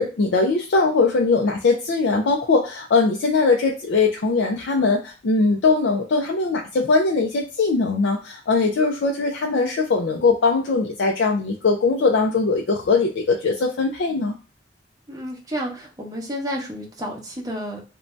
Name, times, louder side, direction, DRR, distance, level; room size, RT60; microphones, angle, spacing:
voice 1, 0.0-14.3, left 4 dB, 80° left, 1 dB, 0.4 m, -20 dB
voice 2, 15.1-17.9, equal, 20° right, -2 dB, 0.7 m, -31 dB
2.6 x 2.2 x 3.1 m, 0.35 s
head